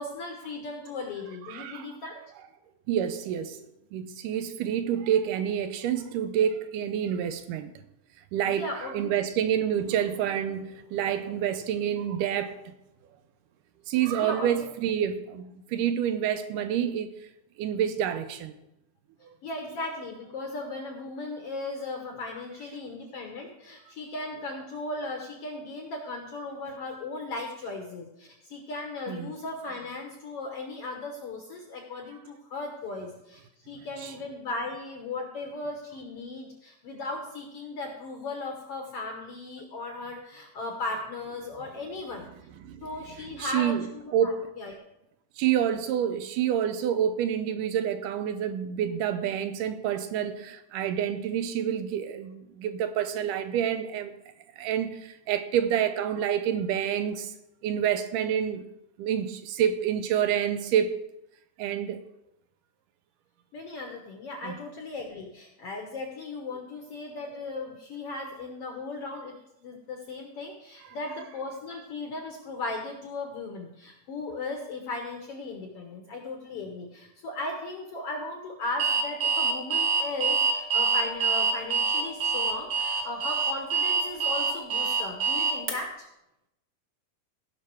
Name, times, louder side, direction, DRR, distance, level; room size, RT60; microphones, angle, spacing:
voice 1, 0.0-2.2 8.4-9.4 14.2-14.7 19.4-42.3 42.8-44.7 63.5-69.3 69.6-86.1, left 2 dB, 65° left, 1.5 m, -37 dB
voice 2, 1.5-1.9 2.9-3.6 3.9-7.7 8.3-8.7 8.9-12.7 13.9-17.1 17.6-18.5 19.2-19.3 29.1-29.3 42.6-42.9 43.4-43.9 44.1-44.3 45.4-54.1 54.6-57.3 57.6-58.6 59.0-61.0 61.6-62.0 64.4-64.5, right 9 dB, 80° right, 2.2 m, -28 dB
Alarm, 78.8-85.7, right 5 dB, 50° right, 1.2 m, -25 dB
16.0 x 6.0 x 4.6 m
omnidirectional pair, 3.9 m